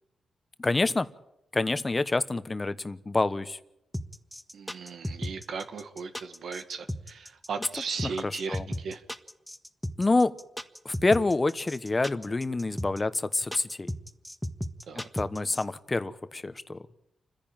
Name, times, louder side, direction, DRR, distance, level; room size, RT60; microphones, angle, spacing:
voice 1, 0.6-1.1 1.5-3.6 8.0-8.7 10.0-10.3 10.8-13.9 14.9-16.8, left 3 dB, 30° left, 13 dB, 1.1 m, -27 dB
sound 1, 3.9-15.6, equal, 5° left, 1.5 m, -35 dB
voice 2, 4.5-9.0 14.9-15.1, right 5 dB, 80° right, 8 dB, 1.7 m, -37 dB
29.5 x 10.5 x 8.9 m, 0.85 s
cardioid pair, 70°, 0 cm